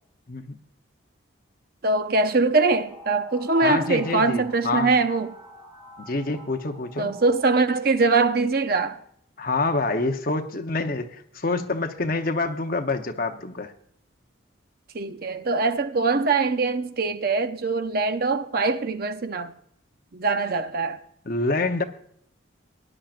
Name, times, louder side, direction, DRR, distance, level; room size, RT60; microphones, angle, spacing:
voice 1, 1.8-5.3 7.0-9.0 14.9-19.5 20.1-21.0, right 3 dB, 50° right, 0.6 m, -23 dB
sound 1, 2.8-9.0, left 1 dB, 5° left, 3.9 m, -46 dB
voice 2, 3.6-4.9 6.0-7.1 9.4-13.7 21.3-21.8, left 3 dB, 45° left, 0.8 m, -27 dB
18.0 x 10.5 x 2.5 m
head